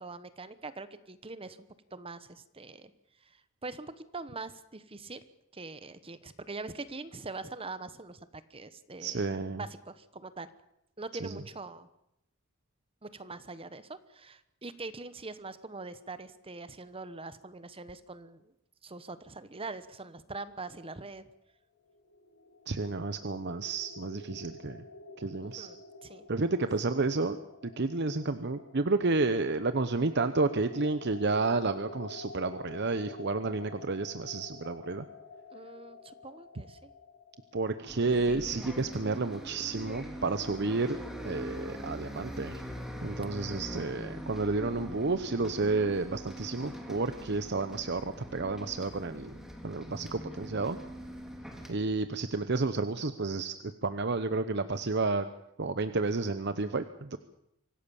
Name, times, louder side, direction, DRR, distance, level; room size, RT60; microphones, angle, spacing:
voice 1, 0.0-2.9 3.2-5.2 5.5-10.5 11.0-11.9 13.0-18.5 18.8-21.2 25.4-26.3 35.5-36.9 43.2-43.5, right 3 dB, 30° right, 13 dB, 1.1 m, -43 dB
voice 2, 9.0-9.6 11.2-11.4 22.7-24.8 25.2-25.7 26.3-27.4 27.8-35.0 37.5-41.0 41.2-42.6 43.0-49.3 49.6-50.8 51.7-55.3 55.6-57.2, right 3 dB, 55° right, 10 dB, 0.9 m, -31 dB
sound 1, 21.9-38.7, left 2 dB, 90° left, 2.2 m, -49 dB
Bus, 37.9-51.7, equal, 5° right, 3.4 m, -42 dB
25.0 x 17.0 x 7.1 m, 0.80 s
head